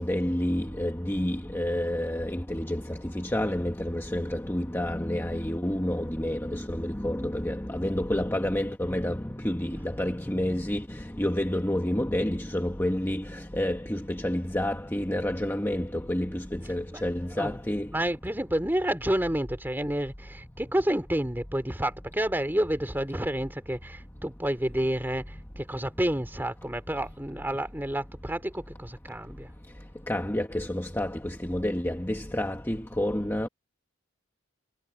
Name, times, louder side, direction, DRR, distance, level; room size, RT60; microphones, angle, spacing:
voice 1, 0.0-2.8 3.1-9.2 9.4-10.8 11.2-13.2 13.6-16.4 16.7-17.9 30.1-31.1 31.5-33.5, left 1 dB, 10° left, 1.2 m, -29 dB
voice 2, 17.9-29.5, right 1 dB, 10° right, 2.7 m, -29 dB
head